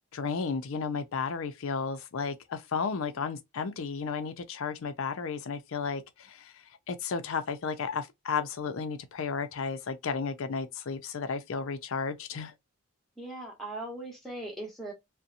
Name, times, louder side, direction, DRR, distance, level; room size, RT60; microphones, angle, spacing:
voice 1, 0.1-12.5, left 5 dB, 60° left, 0.4 m, -33 dB
voice 2, 13.2-14.9, right 2 dB, ahead, 0.9 m, -39 dB
2.7 x 2.1 x 2.4 m
head